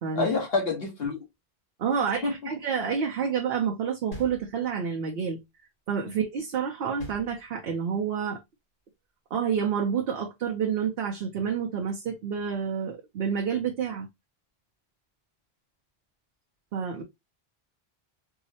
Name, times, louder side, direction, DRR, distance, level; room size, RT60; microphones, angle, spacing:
voice 1, 0.1-1.2 2.2-2.5 6.1-6.2, left 4 dB, 65° left, 1.4 m, -28 dB
voice 2, 1.8-5.4 5.9-8.4 9.3-14.1 16.7-17.0, right 7 dB, 70° right, 0.9 m, -29 dB
sound 1, 4.1-5.0 7.0-7.9, right 1 dB, 85° left, 2.1 m, -43 dB
4.7 x 2.0 x 2.7 m
omnidirectional pair, 1.1 m